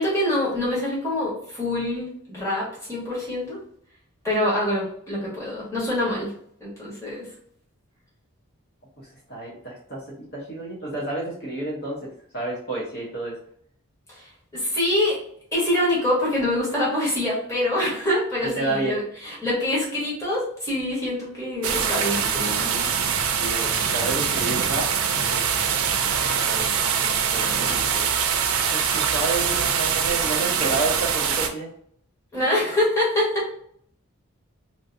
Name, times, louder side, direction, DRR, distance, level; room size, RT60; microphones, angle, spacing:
voice 1, 0.0-3.6 4.2-6.3 6.6-7.3 14.1-15.2 15.5-22.9 23.4-23.6 32.3-33.5, left 1 dB, 15° left, -7 dB, 1.4 m, -25 dB
voice 2, 9.0-10.0 10.3-12.0 12.3-13.4 18.6-18.9 23.3-24.9 25.1-25.4 25.7-28.1 28.6-31.7, right 2 dB, 50° left, -5 dB, 1.0 m, -30 dB
sound 1, 21.6-31.5, right 7 dB, 80° right, 0.5 m, -23 dB
3.0 x 2.7 x 2.5 m, 0.63 s
head